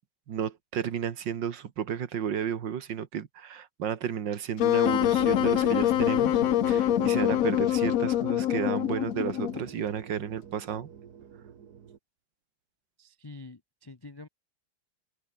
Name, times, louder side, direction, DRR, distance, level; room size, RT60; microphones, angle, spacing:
voice 1, 0.3-10.9, right 8 dB, 75° right, 2.1 m, -33 dB
Wind instrument woodwind instrument, 4.6-9.7, left 13 dB, 70° left, 0.8 m, -25 dB
sound 1, 4.8-12.0, right 8 dB, 60° right, 1.9 m, -40 dB
voice 2, 13.0-14.3, left 3 dB, 40° left, 0.3 m, -46 dB
omnidirectional pair, 2.0 m